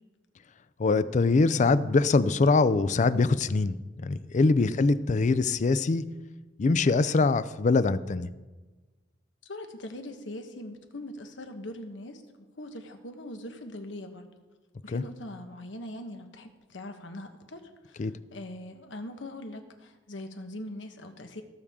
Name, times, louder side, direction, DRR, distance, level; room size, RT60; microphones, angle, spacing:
voice 1, 0.8-6.1 6.6-8.3 14.9-15.0 18.0-18.1, left 3 dB, 40° left, 15 dB, 0.4 m, -23 dB
voice 2, 9.4-12.2 12.6-14.3 14.8-21.4, left 1 dB, 80° left, 6 dB, 1.2 m, -41 dB
17.5 x 6.9 x 3.7 m, 1.2 s
head